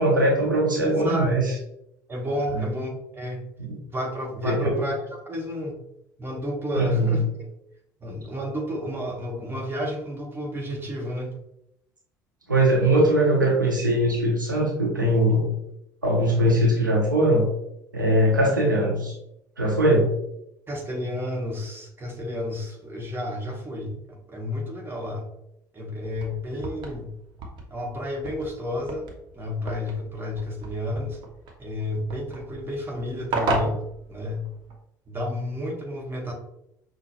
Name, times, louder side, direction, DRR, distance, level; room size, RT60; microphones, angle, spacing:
voice 1, 0.0-1.5 2.5-2.6 3.6-3.8 4.4-4.8 6.8-7.2 12.5-15.5 16.0-17.4 17.9-19.1 19.6-20.1, right 1 dB, 90° right, -3 dB, 0.8 m, -21 dB
voice 2, 0.8-1.3 2.1-3.4 3.8-5.8 6.2-7.5 8.0-11.3 20.7-25.2 25.7-27.1 27.7-31.2 31.6-33.8 34.1-34.5 35.1-36.3, left 1 dB, 20° right, 0 dB, 1.2 m, -31 dB
sound 1, 26.0-34.7, right 2 dB, 50° right, 1.0 m, -35 dB
5.8 x 2.2 x 2.9 m, 0.80 s
figure-of-eight pair, 60°, 10 cm